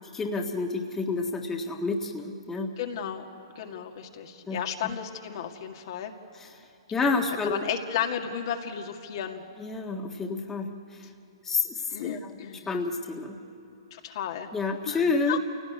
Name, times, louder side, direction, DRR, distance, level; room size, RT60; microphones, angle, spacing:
voice 1, 0.1-2.8 4.5-4.9 6.4-6.5 6.9-7.6 9.6-11.1 11.4-12.2 12.7-13.4 14.5-15.4, left 3 dB, 15° left, 1 dB, 1.6 m, -29 dB
voice 2, 2.8-3.2 3.6-6.1 7.4-9.4 11.9-12.7 13.9-14.5 14.9-15.0 15.3-15.4, left 9 dB, 55° left, 3 dB, 2.0 m, -33 dB
27.5 x 17.5 x 9.5 m, 2.7 s
hypercardioid pair, 130°, 3 cm